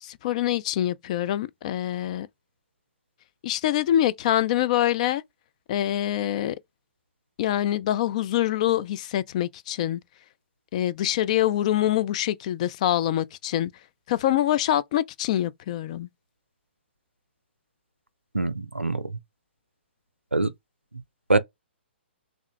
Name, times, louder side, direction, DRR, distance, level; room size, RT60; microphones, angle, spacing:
voice 1, 0.0-2.3 3.4-5.2 5.7-6.5 7.4-10.0 10.7-13.7 14.1-16.1, left 12 dB, 35° left, 0.4 m, -25 dB
voice 2, 18.3-19.1 20.3-20.5 21.3-21.4, right 3 dB, 90° right, 0.5 m, -23 dB
3.5 x 2.6 x 3.2 m
figure-of-eight pair, 125°, 6 cm